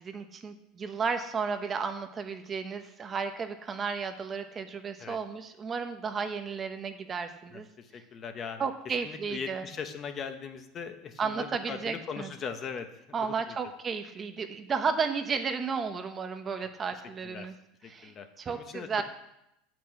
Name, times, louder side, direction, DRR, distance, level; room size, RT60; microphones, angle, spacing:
voice 1, 0.0-7.7 8.6-9.6 11.2-12.3 13.1-17.5 17.9-19.0, right 5 dB, 25° right, 7 dB, 0.9 m, -33 dB
voice 2, 7.8-8.7 9.0-13.0 13.5-13.6 17.2-17.5 17.8-18.9, left 6 dB, 35° left, 8 dB, 1.0 m, -39 dB
8.3 x 6.2 x 7.4 m, 0.82 s
supercardioid pair, 135°, 0 cm